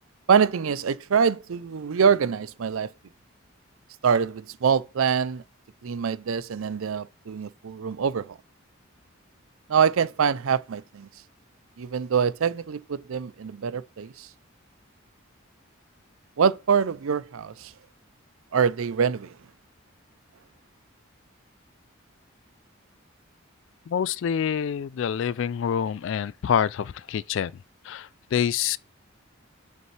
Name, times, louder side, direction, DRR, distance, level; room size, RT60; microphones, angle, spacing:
voice 1, 0.3-2.9 4.0-5.4 5.8-8.3 9.7-11.1 11.8-14.1 16.4-17.7 18.5-19.3, right 6 dB, 75° right, 0.5 m, -24 dB
voice 2, 23.9-27.5 27.8-28.8, left 8 dB, 60° left, 0.3 m, -26 dB
7.7 x 5.2 x 3.3 m
head